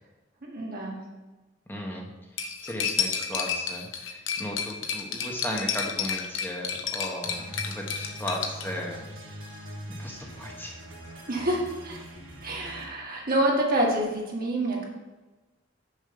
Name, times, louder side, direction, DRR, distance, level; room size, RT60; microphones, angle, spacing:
voice 1, 0.4-1.0 11.3-12.0 12.4-14.9, right 1 dB, 50° right, -2 dB, 1.7 m, -27 dB
voice 2, 1.7-2.1 2.6-9.1 10.0-10.7, equal, 10° left, -1 dB, 1.0 m, -36 dB
Cutlery silverware, 2.4-8.6, left 7 dB, 80° left, 0.9 m, -31 dB
sound 1, 7.2-12.9, equal, 75° right, 1.8 m, -42 dB
6.5 x 5.3 x 5.3 m, 1.2 s
head